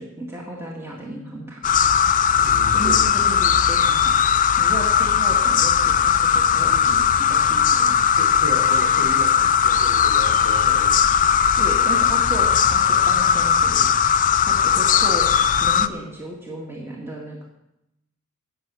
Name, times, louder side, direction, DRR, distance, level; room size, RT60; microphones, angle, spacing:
voice 1, 0.0-1.6 2.7-4.2 4.6-8.1 11.6-13.9 14.4-15.3 15.6-17.5, right 1 dB, 10° right, -3 dB, 2.0 m, -34 dB
sound 1, 1.6-15.9, left 8 dB, 35° left, 0.5 m, -18 dB
voice 2, 2.4-3.1 6.5-6.8 8.1-11.0, equal, 60° right, -1 dB, 4.2 m, -34 dB
17.5 x 6.8 x 6.3 m, 0.87 s
head